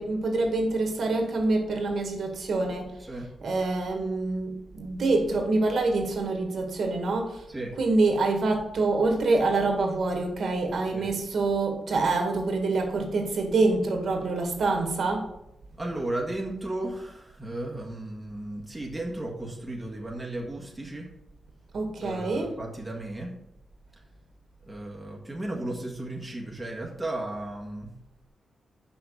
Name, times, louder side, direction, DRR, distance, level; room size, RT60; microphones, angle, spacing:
voice 1, 0.0-3.0 3.4-7.4 7.8-15.3 21.7-22.5, right 3 dB, 60° right, 2 dB, 1.8 m, -26 dB
voice 2, 15.8-21.1 22.0-23.3 24.7-27.9, right 1 dB, 10° right, -2 dB, 1.6 m, -35 dB
6.2 x 5.9 x 6.4 m, 0.82 s
wide cardioid pair, 135°, 0 cm